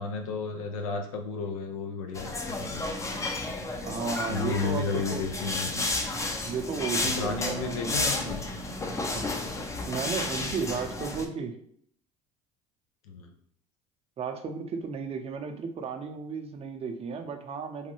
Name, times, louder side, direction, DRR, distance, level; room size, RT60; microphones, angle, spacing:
voice 1, 0.0-2.9 4.3-5.9 7.0-8.4 13.0-13.3, left 4 dB, 90° left, 4 dB, 0.5 m, -33 dB
sound 1, 2.1-11.3, left 2 dB, 15° left, 0.5 m, -32 dB
voice 2, 3.7-5.3 6.4-7.7 9.1-9.3 9.9-11.5 14.2-17.9, right 5 dB, 35° right, 5 dB, 0.5 m, -34 dB
3.1 x 2.2 x 3.0 m, 0.63 s
hypercardioid pair, 75°, 17 cm